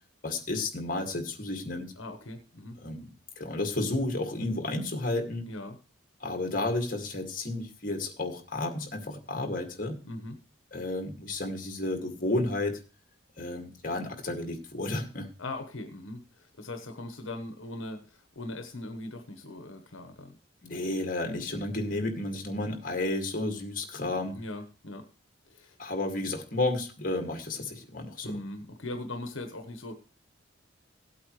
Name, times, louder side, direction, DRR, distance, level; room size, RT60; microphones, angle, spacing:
voice 1, 0.2-1.9 2.8-3.1 3.4-5.5 6.2-10.0 10.7-12.8 13.4-15.3 20.6-24.4 25.8-28.4, left 2 dB, 40° left, 4 dB, 2.1 m, -32 dB
voice 2, 2.0-2.8 5.5-5.8 10.0-10.4 15.4-20.4 24.3-25.1 25.5-25.8 28.2-30.0, left 2 dB, 80° left, 6 dB, 1.2 m, -40 dB
17.0 x 8.4 x 3.2 m, 0.34 s
head